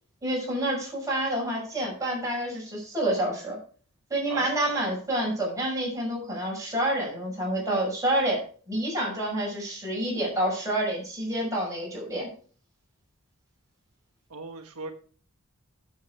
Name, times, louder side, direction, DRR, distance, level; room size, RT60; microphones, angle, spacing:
voice 1, 0.2-3.6 4.1-12.3, right 1 dB, 15° right, -3 dB, 5.6 m, -28 dB
voice 2, 4.3-4.9 14.3-14.9, right 3 dB, 85° right, 3 dB, 1.2 m, -39 dB
9.2 x 7.3 x 4.7 m, 0.43 s
head